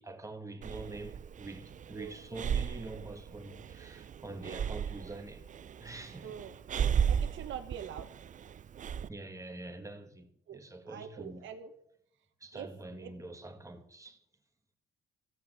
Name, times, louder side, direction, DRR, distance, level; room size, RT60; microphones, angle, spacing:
voice 1, 0.0-5.5 5.8-6.3 9.1-11.4 12.4-14.2, right 2 dB, 15° right, 2.0 m, -45 dB
Breathing, 0.6-9.1, right 8 dB, 40° right, 0.5 m, -35 dB
voice 2, 6.2-6.5 7.1-8.1 10.5-10.6 10.9-11.7 12.5-12.7 13.0-13.1, right 8 dB, 75° right, 1.3 m, -43 dB
14.5 x 5.7 x 9.0 m
cardioid pair, 90°, 20 cm